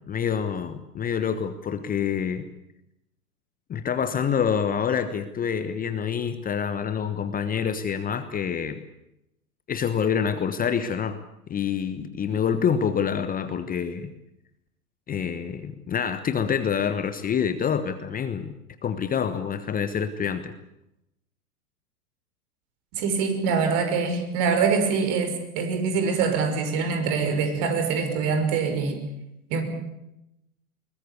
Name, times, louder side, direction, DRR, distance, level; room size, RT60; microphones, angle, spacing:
voice 1, 0.1-2.4 3.7-8.8 9.7-11.2 11.5-14.1 15.1-18.5 18.8-20.5, left 7 dB, 20° left, 11 dB, 1.2 m, -27 dB
voice 2, 22.9-29.0 29.5-29.6, right 5 dB, 45° right, 6 dB, 6.0 m, -24 dB
22.0 x 20.0 x 8.3 m, 0.86 s
figure-of-eight pair, 100°, 46 cm